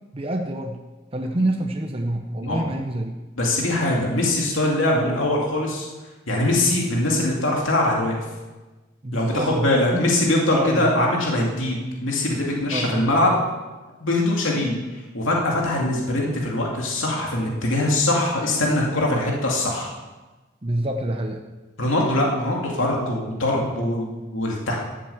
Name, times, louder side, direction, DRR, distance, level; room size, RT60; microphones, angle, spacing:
voice 1, 0.1-0.8 1.1-3.1 4.8-5.0 9.0-10.1 10.5-11.1 12.7-13.1 19.1-19.3 20.6-21.4, right 1 dB, 30° right, 3 dB, 0.7 m, -27 dB
voice 2, 3.4-5.9 6.3-8.2 9.1-13.4 14.0-14.7 15.1-19.9 21.8-24.8, left 1 dB, 85° left, -2 dB, 2.5 m, -22 dB
14.0 x 7.6 x 7.1 m, 1.2 s
head